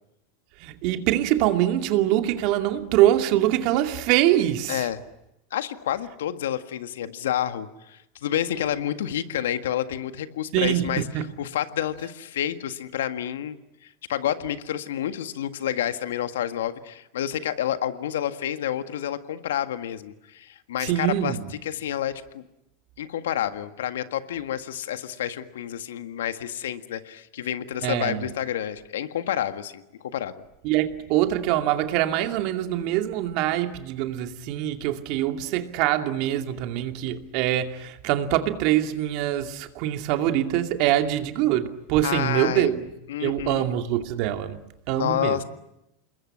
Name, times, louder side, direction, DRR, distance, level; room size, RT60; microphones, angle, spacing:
voice 1, 0.6-4.9 10.5-11.3 20.8-21.6 27.8-28.2 30.6-42.9 43.2-45.4, right 13 dB, 55° right, 2.5 m, -24 dB
voice 2, 4.7-5.0 5.5-21.4 21.6-22.4 23.0-30.3 42.0-42.7 43.1-43.7 44.9-45.4, left 11 dB, 80° left, 1.7 m, -29 dB
27.5 x 21.5 x 9.9 m
hypercardioid pair, 105°, 0 cm